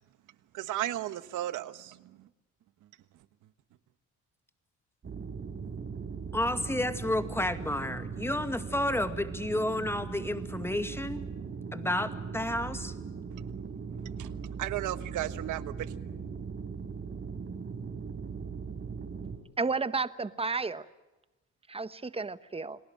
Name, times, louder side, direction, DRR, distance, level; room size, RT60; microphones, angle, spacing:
voice 1, 0.5-2.0 14.0-15.7, right 14 dB, 85° right, 13 dB, 1.4 m, -35 dB
sound 1, 5.0-19.4, right 5 dB, 40° right, 4.4 m, -39 dB
voice 2, 6.3-11.2 11.7-12.9, left 1 dB, 10° left, 9 dB, 2.1 m, -31 dB
voice 3, 19.6-20.9 21.7-22.8, right 4 dB, 20° right, 14 dB, 1.1 m, -32 dB
29.0 x 20.0 x 7.5 m, 1.0 s
cardioid pair, 90°, 30 cm